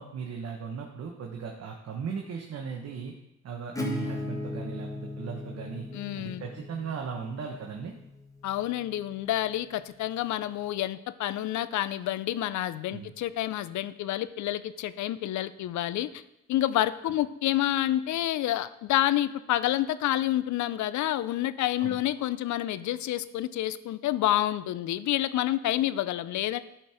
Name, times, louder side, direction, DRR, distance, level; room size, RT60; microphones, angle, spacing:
voice 1, 0.0-3.1 3.4-5.9 6.2-7.9 12.9-13.1 17.0-17.1 21.8-22.0, right 6 dB, 55° right, 1 dB, 1.1 m, -37 dB
Acoustic guitar / Strum, 3.7-9.2, left 2 dB, 10° left, 1.4 m, -38 dB
voice 2, 5.9-6.4 8.4-16.2 16.5-26.6, left 13 dB, 70° left, 16 dB, 0.5 m, -28 dB
12.0 x 4.5 x 4.9 m, 0.85 s
cardioid pair, 90°, 30 cm